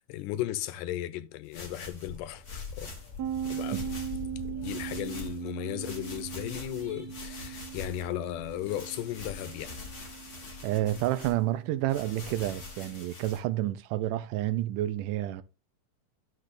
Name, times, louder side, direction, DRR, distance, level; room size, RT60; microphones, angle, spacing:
voice 1, 0.0-2.9 3.4-4.0 4.3-9.8, left 13 dB, 85° left, 2.2 m, -36 dB
sound 1, 1.4-4.2 4.6-5.5 5.8-8.1 8.5-11.4 11.9-13.4, left 3 dB, 70° left, 0.6 m, -45 dB
sound 2, 2.1-10.0, left 5 dB, 40° left, 1.6 m, -46 dB
sound 3, 3.2-12.6, right 9 dB, 75° right, 1.7 m, -40 dB
voice 2, 10.6-15.4, right 14 dB, 90° right, 2.2 m, -29 dB
11.5 x 6.1 x 2.5 m
omnidirectional pair, 3.7 m